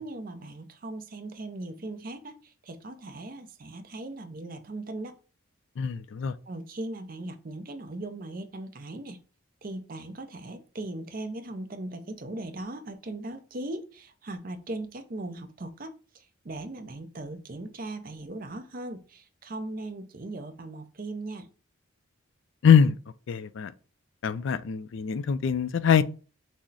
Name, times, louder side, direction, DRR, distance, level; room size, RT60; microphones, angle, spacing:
voice 1, 0.0-5.1 6.5-9.2 9.6-21.5, right 2 dB, 40° right, 0.5 m, -39 dB
voice 2, 5.8-6.3 22.6-23.0 23.3-23.7 24.2-26.0, left 7 dB, 65° left, 0.3 m, -23 dB
6.1 x 2.1 x 4.0 m
head